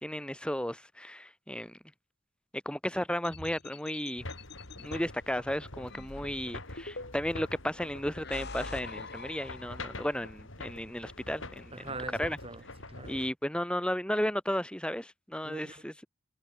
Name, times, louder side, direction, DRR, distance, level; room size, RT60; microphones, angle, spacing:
voice 1, 0.0-1.8 2.7-4.2 4.8-11.7 12.2-12.4 13.1-16.1, equal, 5° left, 3.8 m, -34 dB
sound 1, 3.2-5.0 5.9-7.4 8.0-10.2, left 3 dB, 55° left, 3.3 m, -45 dB
sound 2, 4.2-13.3, left 2 dB, 70° left, 5.1 m, -45 dB
voice 2, 11.7-13.2 15.4-15.8, right 2 dB, 30° right, 5.9 m, -43 dB
head